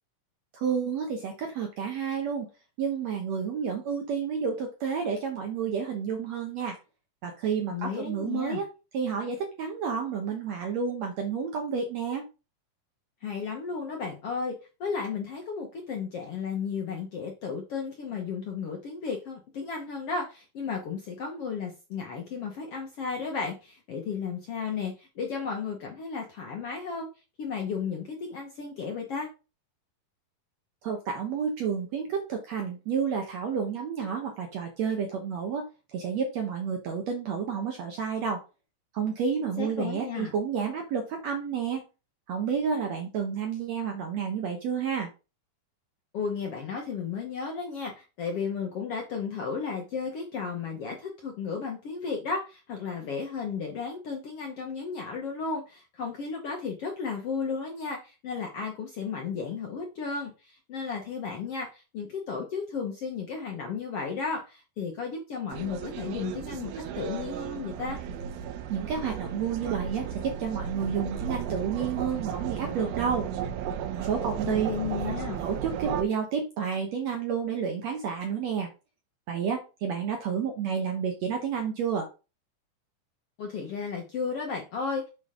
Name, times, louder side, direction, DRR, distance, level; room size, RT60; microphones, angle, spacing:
voice 1, 0.5-2.5 2.8-6.8 7.2-8.7 8.9-12.3 30.8-38.4 38.9-41.8 42.3-45.1 68.7-73.3 73.9-74.7 75.1-75.2 75.4-78.7 79.3-82.1, right 6 dB, 70° right, 3 dB, 1.7 m, -30 dB
voice 2, 7.7-8.6 13.2-14.5 14.8-27.1 27.4-29.3 39.6-40.3 46.1-68.0 74.4-75.4 83.4-85.1, left 5 dB, 60° left, 1 dB, 1.6 m, -34 dB
sound 1, 65.5-76.0, right 8 dB, 85° right, 2.6 m, -34 dB
7.1 x 5.6 x 3.7 m, 0.30 s
omnidirectional pair, 4.2 m